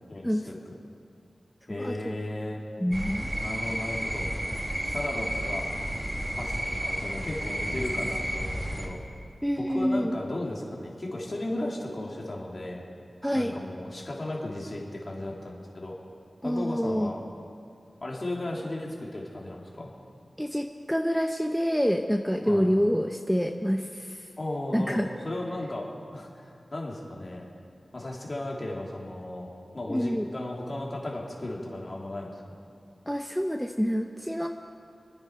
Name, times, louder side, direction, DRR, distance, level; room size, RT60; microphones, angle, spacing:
voice 1, 0.1-0.7 1.7-2.6 3.4-4.3 4.9-5.6 6.3-9.0 9.6-12.8 13.3-15.9 16.4-17.2 18.0-19.9 22.4-22.7 24.4-27.4 27.9-32.4, left 1 dB, 45° left, -2 dB, 2.9 m, -35 dB
voice 2, 2.8-3.3 9.4-10.1 13.2-13.5 16.4-17.1 20.4-24.1 24.7-25.1 29.9-30.3 33.1-34.5, equal, ahead, 4 dB, 0.7 m, -27 dB
sound 1, 2.9-8.9, equal, 25° right, 2.1 m, -32 dB
27.5 x 9.7 x 4.6 m, 2.4 s
wide cardioid pair, 70°, 0 cm